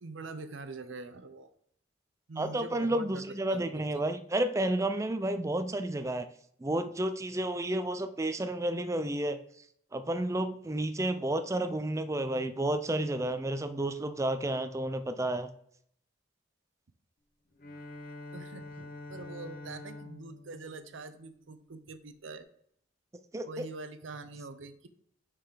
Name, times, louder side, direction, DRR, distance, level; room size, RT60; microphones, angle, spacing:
voice 1, 0.0-1.5 2.3-4.0 18.3-22.5 23.4-24.9, right 3 dB, 70° right, 12 dB, 0.6 m, -44 dB
voice 2, 2.4-6.3 6.6-9.4 9.9-15.5 23.3-23.4, right 1 dB, 15° right, 10 dB, 0.4 m, -31 dB
Bowed string instrument, 17.6-21.9, left 2 dB, 45° left, 0.8 m, -47 dB
5.8 x 4.8 x 5.0 m, 0.68 s
head